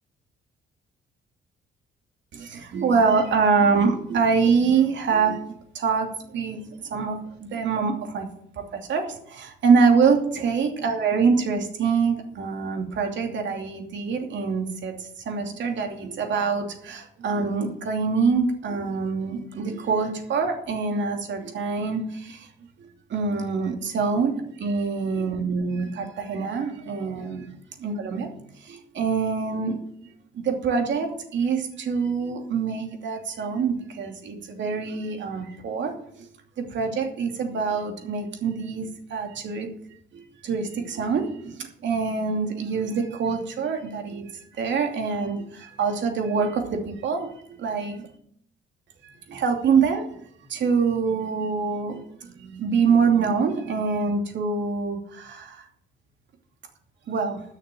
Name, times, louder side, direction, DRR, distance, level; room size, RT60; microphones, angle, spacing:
voice 1, 2.3-6.1 6.3-8.3 8.7-22.5 23.1-27.4 27.8-28.4 28.6-29.8 30.3-36.3 36.6-39.7 40.1-44.2 44.6-47.3 47.6-48.1 49.0-50.0 50.5-55.6 57.1-57.4, right 5 dB, 65° right, 3 dB, 2.7 m, -25 dB
10.5 x 6.5 x 9.0 m, 0.68 s
cardioid pair, 90°, 20 cm